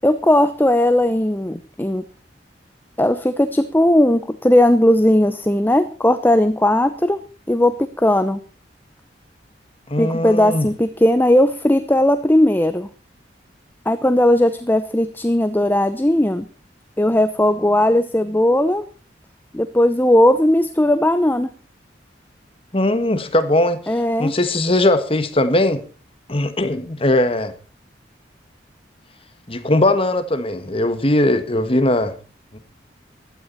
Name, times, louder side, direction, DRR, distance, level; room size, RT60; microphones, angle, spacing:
voice 1, 0.0-2.0 3.0-7.2 7.5-8.4 10.0-12.9 13.9-16.5 17.0-18.9 19.5-21.5 23.9-24.3, left 1 dB, 10° left, 0.8 m, -17 dB
voice 2, 9.9-10.7 22.7-23.8 24.2-25.8 26.3-27.5 29.5-32.1 32.5-32.6, left 1 dB, 30° left, 1.6 m, -19 dB
15.5 x 12.5 x 4.1 m
head